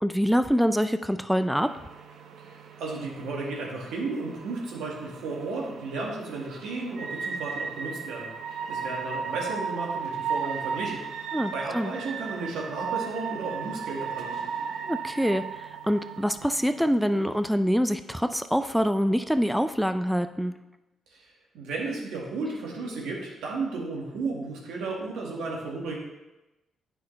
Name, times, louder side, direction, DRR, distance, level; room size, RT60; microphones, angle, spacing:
voice 1, 0.0-1.7 11.3-11.9 14.9-20.5, equal, ahead, 9 dB, 0.3 m, -25 dB
sound 1, 1.6-17.5, right 6 dB, 70° right, 0.6 m, -36 dB
voice 2, 2.4-11.0 11.5-14.4 21.1-26.0, right 3 dB, 85° right, -2 dB, 1.8 m, -34 dB
8.7 x 5.6 x 3.3 m, 1.0 s
cardioid pair, 90°, 0 cm